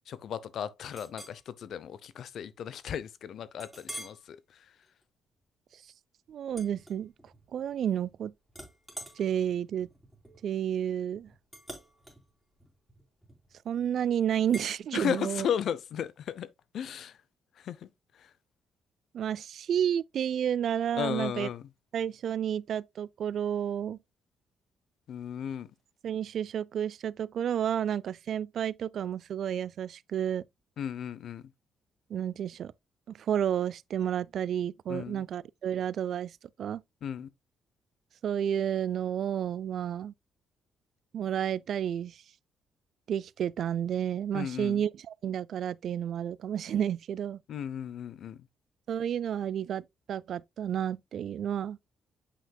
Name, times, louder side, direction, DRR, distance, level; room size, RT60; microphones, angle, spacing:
voice 1, 0.1-4.7 14.9-16.5 16.7-17.2 17.6-17.9 18.2-18.3 20.9-21.7 25.1-25.7 30.8-31.4 34.9-35.2 37.0-37.3 44.3-44.8 47.5-48.5, left 8 dB, 65° left, 0.6 m, -35 dB
Chink clink, 0.9-1.4 1.9-2.1 2.6-2.7 3.6-4.2 4.8-5.0 6.5-7.5 7.8-8.2 8.5-13.6 14.5-14.7, equal, ahead, 3.2 m, -47 dB
voice 2, 6.3-7.1 7.5-8.3 9.2-9.9 10.4-11.3 13.7-15.5 19.1-21.5 21.9-24.0 26.0-30.4 32.1-32.7 33.1-36.8 38.2-40.1 41.1-42.2 43.1-47.4 48.9-51.8, right 9 dB, 65° right, 0.3 m, -31 dB
8.2 x 5.8 x 2.2 m
cardioid pair, 90°, 0 cm